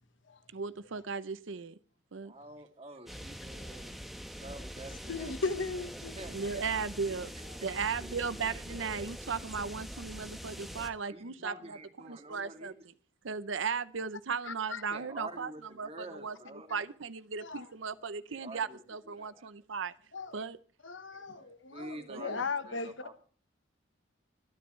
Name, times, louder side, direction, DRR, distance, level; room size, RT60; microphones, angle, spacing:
voice 1, 0.5-1.7 2.1-2.3 6.3-7.3 7.6-11.8 12.0-12.7 13.2-15.5 15.8-16.4 16.7-19.9 20.3-20.6 22.1-22.4, right 5 dB, 75° right, 0.7 m, -36 dB
voice 2, 2.2-4.0 4.3-5.3 6.1-8.2 11.0-12.8 14.9-16.9 18.0-19.5 21.1-23.2, right 1 dB, 30° right, 2.6 m, -48 dB
sound 1, 3.1-10.9, equal, ahead, 1.2 m, -44 dB
voice 3, 5.1-6.2 14.5-14.8 17.4-17.6 20.1-20.4 20.8-22.9, left 4 dB, 75° left, 1.3 m, -37 dB
24.5 x 10.5 x 3.2 m
head